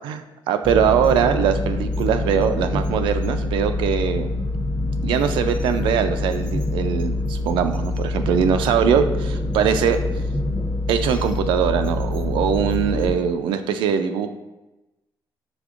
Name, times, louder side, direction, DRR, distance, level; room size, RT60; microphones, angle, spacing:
voice 1, 0.0-4.3 5.0-10.0 10.9-14.3, right 8 dB, 85° right, 8 dB, 0.3 m, -21 dB
sound 1, 0.6-13.1, left 2 dB, 10° left, 0.6 m, -25 dB
5.2 x 3.3 x 2.4 m, 1.0 s
cardioid pair, 105°, 8 cm